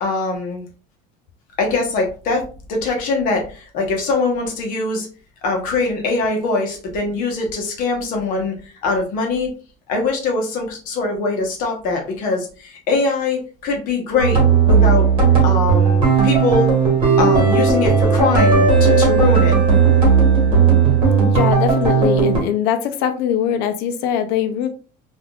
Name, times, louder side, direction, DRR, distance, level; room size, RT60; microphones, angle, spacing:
voice 1, 0.0-0.7 1.6-2.4 2.7-5.1 5.4-8.5 8.8-9.5 9.9-14.4 14.6-15.1 15.4-16.7 17.2-19.6, left 3 dB, 55° left, 2 dB, 0.9 m, -22 dB
sound 1, 14.2-22.4, right 5 dB, 30° right, 1.2 m, -15 dB
voice 2, 21.2-24.7, left 9 dB, 80° left, 8 dB, 0.5 m, -21 dB
3.3 x 2.5 x 2.3 m, 0.37 s
cardioid pair, 175°, 18 cm